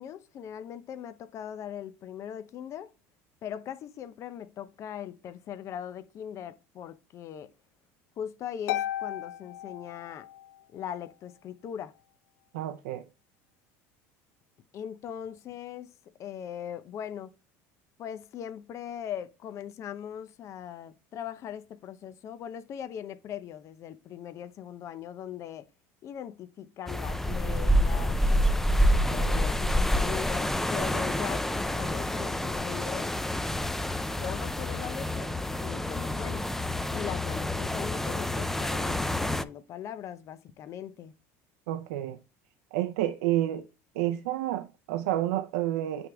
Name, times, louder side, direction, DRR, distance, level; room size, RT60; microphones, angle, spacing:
voice 1, 0.0-2.9 3.4-7.5 8.2-10.3 10.7-11.9 14.7-15.9 16.2-17.3 18.0-25.7 26.0-28.2 29.0-33.1 34.2-36.5 36.9-41.1, left 9 dB, 45° left, 0.7 m, -40 dB
Harp, 8.7-10.6, left 13 dB, 85° left, 0.7 m, -34 dB
voice 2, 12.5-13.0 41.7-42.2 42.7-43.7 43.9-46.1, right 13 dB, 90° right, 0.6 m, -29 dB
sound 1, 26.9-39.4, left 1 dB, 5° left, 0.5 m, -28 dB
9.2 x 3.6 x 3.5 m
supercardioid pair, 115°, 7 cm